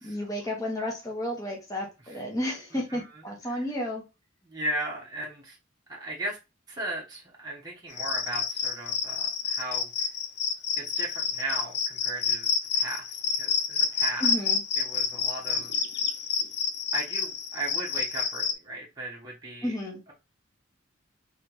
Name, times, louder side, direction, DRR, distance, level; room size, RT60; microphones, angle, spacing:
voice 1, 0.0-4.0 14.2-14.6 19.6-20.0, left 1 dB, 15° left, 1.3 m, -32 dB
voice 2, 4.4-5.6 5.9-6.4 6.7-10.1 10.8-12.5 12.7-14.3 14.8-15.7 16.9-19.7, right 2 dB, 20° right, 1.0 m, -36 dB
Cricket, 7.9-18.5, left 5 dB, 55° left, 0.6 m, -28 dB
3.4 x 3.4 x 3.0 m
head